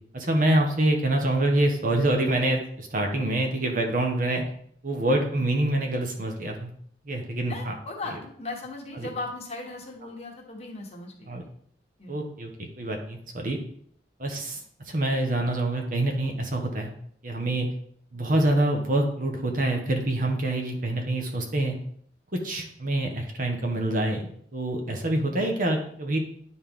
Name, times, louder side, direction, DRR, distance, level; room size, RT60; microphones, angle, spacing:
voice 1, 0.1-4.4 4.8-6.7 7.1-7.7 9.0-9.1 11.3-11.4 12.1-13.6 14.2-16.9 17.2-17.7 18.1-21.8 22.3-24.2 24.5-26.2, right 1 dB, 45° right, 2 dB, 1.2 m, -26 dB
voice 2, 7.5-11.3 12.0-12.1, left 2 dB, 35° left, 0 dB, 1.4 m, -37 dB
10.5 x 4.3 x 3.7 m, 0.63 s
head